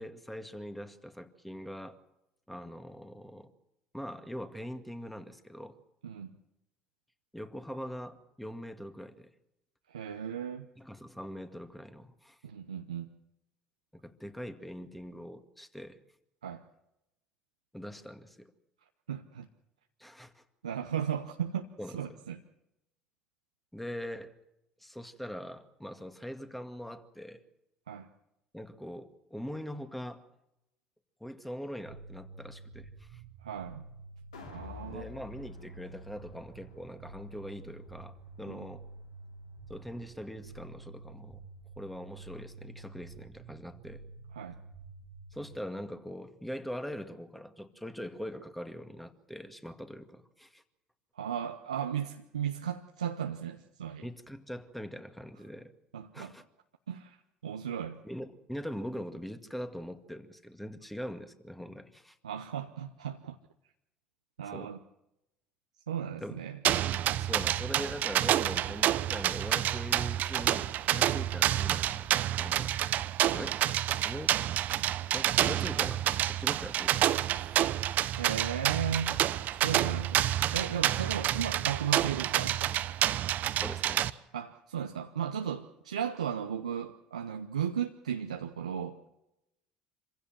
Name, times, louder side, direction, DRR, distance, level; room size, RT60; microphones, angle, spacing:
voice 1, 0.0-2.0 2.5-3.5 3.9-5.8 7.3-9.3 10.8-12.4 14.0-16.0 17.7-18.5 20.0-20.4 21.8-22.2 23.7-24.3 24.8-27.4 28.5-30.2 31.2-33.2 34.9-38.8 39.7-41.4 41.8-44.0 45.3-50.6 54.0-55.7 56.1-56.4 58.0-62.2 64.5-64.7 66.2-66.4 67.2-72.8 73.3-73.6 74.0-74.4 75.1-77.6 83.6-84.1, equal, 5° left, 9 dB, 2.1 m, -42 dB
voice 2, 6.0-6.4 9.9-10.7 12.4-13.1 16.4-16.6 19.1-19.5 20.6-21.7 21.9-22.4 27.9-28.1 33.4-33.8 34.5-35.1 38.5-38.7 44.3-44.6 51.2-54.0 55.9-56.3 56.9-57.2 57.4-58.0 62.2-63.4 64.4-64.8 65.9-66.6 71.0-71.2 78.2-82.6 84.3-89.0, right 8 dB, 90° right, 5 dB, 0.9 m, -35 dB
sound 1, 31.8-45.6, right 3 dB, 70° right, 1.8 m, -49 dB
sound 2, 34.3-40.5 40.9-41.0, left 6 dB, 85° left, 2.9 m, -53 dB
sound 3, 66.6-84.1, right 12 dB, 55° right, 0.8 m, -28 dB
26.0 x 16.0 x 7.6 m, 0.87 s
hypercardioid pair, 65°, 3 cm